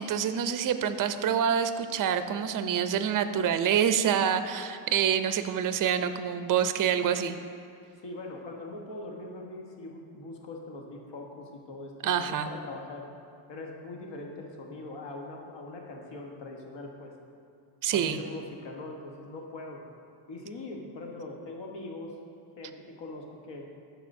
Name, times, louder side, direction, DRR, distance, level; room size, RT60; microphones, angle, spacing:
voice 1, 0.0-7.4 12.0-12.5 17.8-18.2, right 8 dB, 45° right, 10 dB, 0.5 m, -27 dB
voice 2, 8.0-13.1 13.5-17.1 17.9-19.8 20.3-22.1 22.6-23.6, left 2 dB, 60° left, 1 dB, 1.2 m, -41 dB
12.5 x 4.8 x 2.6 m, 2.5 s
cardioid pair, 100°, 49 cm